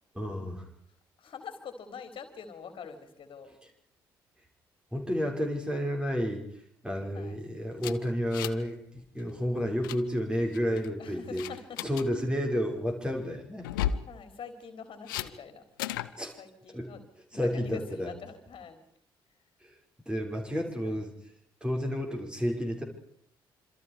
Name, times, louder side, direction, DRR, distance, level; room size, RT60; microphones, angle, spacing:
voice 1, 0.1-0.7 4.9-6.4 6.8-11.5 11.8-13.7 16.2-16.4 16.7-16.9 17.3-18.1 19.6-19.8 20.1-21.1 21.6-22.8, equal, 10° right, 1 dB, 6.0 m, -31 dB
voice 2, 1.2-3.5 7.1-7.4 11.0-11.8 14.1-16.1 16.4-17.0 17.3-18.8 20.8-21.0, left 6 dB, 45° left, 7 dB, 3.7 m, -44 dB
sound 1, 7.8-8.7 9.0-9.2 9.6-10.0 10.5-10.9 11.4-12.1 13.6-14.1 15.1-15.3 15.8-16.1, left 11 dB, 75° left, 0.8 m, -33 dB
27.0 x 26.0 x 5.0 m, 0.67 s
figure-of-eight pair, 45°, 11 cm